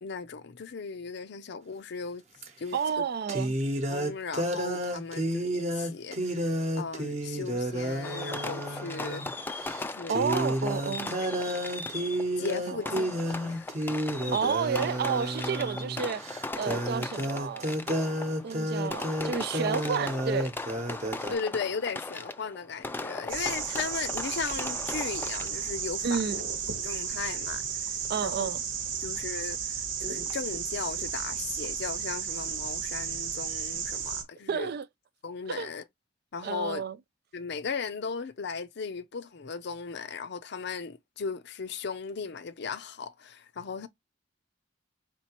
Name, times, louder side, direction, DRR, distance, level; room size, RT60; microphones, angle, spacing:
voice 1, 0.0-2.2 2.6-2.8 3.9-6.4 6.8-9.4 9.8-10.4 12.4-13.9 14.3-14.4 21.3-26.3 26.8-28.0 28.2-28.5 29.0-34.7 35.2-35.8 36.3-36.8 37.3-43.9, left 5 dB, 60° left, 0.6 m, -37 dB
sound 1, 2.4-2.5 3.3-9.3 9.6-9.8 10.1-21.3, equal, 35° right, 0.9 m, -31 dB
voice 2, 2.7-3.5 10.1-11.1 12.7-12.9 14.3-16.2 16.5-17.7 18.4-20.5 26.0-26.4 28.1-28.6 34.5-34.9 35.5-35.7 36.4-37.0, right 6 dB, 55° right, 0.4 m, -31 dB
Fireworks, 8.0-25.8, left 2 dB, 10° left, 0.4 m, -38 dB
sound 2, 23.3-34.2, right 7 dB, 85° right, 1.1 m, -33 dB
4.3 x 4.0 x 3.0 m
head